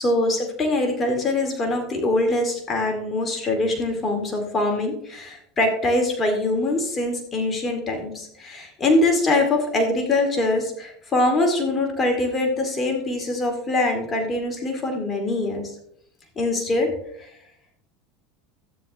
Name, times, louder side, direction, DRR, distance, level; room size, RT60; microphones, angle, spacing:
voice 1, 0.0-15.7 16.4-16.9 17.2-17.3, left 2 dB, 25° left, 2 dB, 2.3 m, -23 dB
13.0 x 9.4 x 3.1 m, 0.72 s
supercardioid pair, 100°, 0 cm